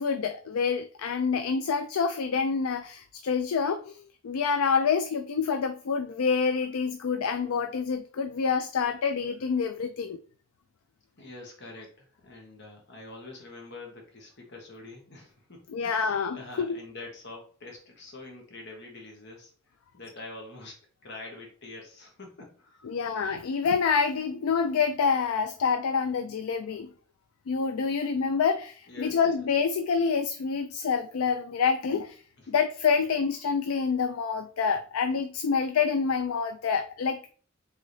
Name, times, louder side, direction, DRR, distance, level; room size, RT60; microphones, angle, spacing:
voice 1, 0.0-10.2 15.7-16.8 22.8-26.9 27.5-32.2 32.5-37.3, left 5 dB, 80° left, 8 dB, 0.4 m, -27 dB
voice 2, 11.2-23.1 28.8-29.5 32.4-32.5, left 2 dB, 55° left, 1 dB, 1.2 m, -46 dB
4.0 x 3.7 x 3.2 m, 0.44 s
head